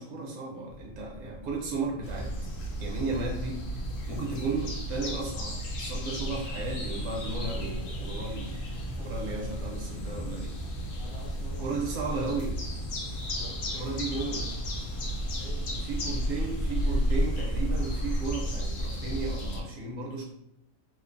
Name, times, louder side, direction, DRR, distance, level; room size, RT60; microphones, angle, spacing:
voice 1, 0.0-2.3 2.8-3.6 4.1-8.5 9.0-10.5 11.6-12.5 13.8-14.4 15.9-20.2, right 3 dB, 60° right, -2 dB, 0.9 m, -34 dB
sound 1, 0.7-18.3, equal, 45° right, 0.4 m, -48 dB
sound 2, 2.0-19.6, equal, 75° left, 1.0 m, -33 dB
voice 2, 11.0-12.3 13.3-14.5 15.2-16.4, equal, 50° left, -2 dB, 0.8 m, -49 dB
sound 3, 13.1-18.2, left 1 dB, 15° left, 0.5 m, -45 dB
3.0 x 2.1 x 2.5 m, 0.80 s
omnidirectional pair, 1.4 m